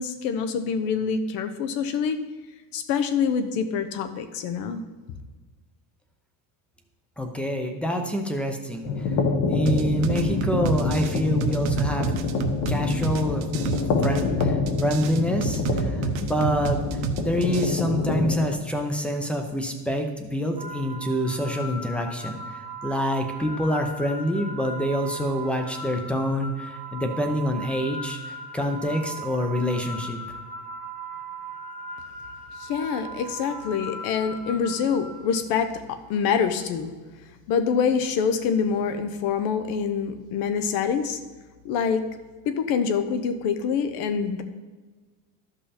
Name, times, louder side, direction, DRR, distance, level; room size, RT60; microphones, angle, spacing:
voice 1, 0.0-2.2 2.7-4.8 32.6-36.9 37.5-41.2 41.6-42.1 42.4-44.4, left 6 dB, 65° left, 9 dB, 0.9 m, -25 dB
voice 2, 7.2-8.9 9.5-12.1 12.7-13.4 13.8-16.8 17.2-28.2 28.5-30.2, equal, 5° left, 4 dB, 0.6 m, -26 dB
sound 1, 8.8-18.5, left 4 dB, 45° left, 1.1 m, -26 dB
sound 2, 9.7-17.7, right 7 dB, 70° right, 1.0 m, -29 dB
sound 3, 20.6-35.7, right 2 dB, 15° right, 1.0 m, -38 dB
13.0 x 5.5 x 4.2 m, 1.3 s
cardioid pair, 175°, 39 cm